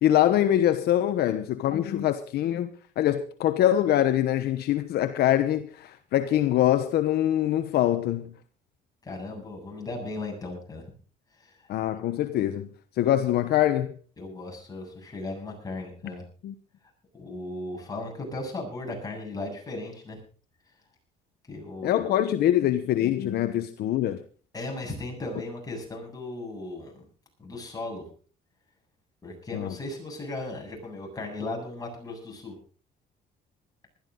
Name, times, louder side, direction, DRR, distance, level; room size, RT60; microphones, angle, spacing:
voice 1, 0.0-2.7 3.0-8.3 11.7-12.7 13.0-13.9 16.4-16.5 21.8-24.2 29.5-29.8, left 12 dB, 70° left, 1.1 m, -24 dB
voice 2, 9.0-10.8 11.4-11.5 14.2-16.2 17.1-20.2 21.5-22.1 24.5-27.1 27.4-28.0 29.2-32.5, left 2 dB, 20° left, 7.9 m, -36 dB
20.0 x 13.0 x 3.9 m
cardioid pair, 110°, 17 cm